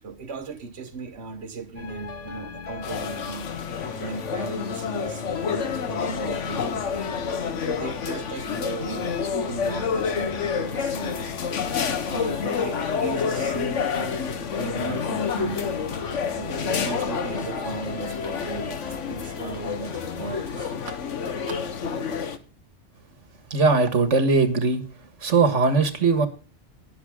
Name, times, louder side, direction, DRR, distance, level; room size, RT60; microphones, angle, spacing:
voice 1, 0.0-3.5 4.0-7.1 7.6-11.7 12.0-14.2 14.6-15.8 16.4-21.2 21.5-21.6, right 4 dB, 65° right, 4 dB, 1.5 m, -37 dB
sound 1, 1.8-20.3, left 4 dB, 35° left, 1.1 m, -39 dB
sound 2, 2.8-22.4, left 6 dB, 85° left, 1.5 m, -29 dB
voice 2, 23.5-24.8 25.2-26.3, right 4 dB, 85° right, 10 dB, 2.0 m, -20 dB
20.5 x 7.2 x 3.7 m, 0.34 s
omnidirectional pair, 1.2 m